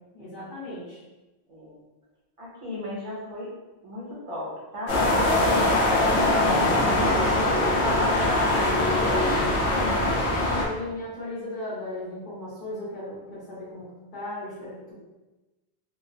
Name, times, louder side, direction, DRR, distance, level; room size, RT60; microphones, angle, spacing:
voice 1, 0.1-1.0 10.3-14.9, left 1 dB, 55° left, -11 dB, 1.0 m, -36 dB
voice 2, 2.4-3.5 3.8-6.7 7.3-8.1 8.5-10.2, left 1 dB, 35° right, -7 dB, 0.8 m, -35 dB
sound 1, 4.9-10.7, left 1 dB, 80° left, 0.9 m, -22 dB
2.9 x 2.0 x 2.5 m, 1.1 s
omnidirectional pair, 1.1 m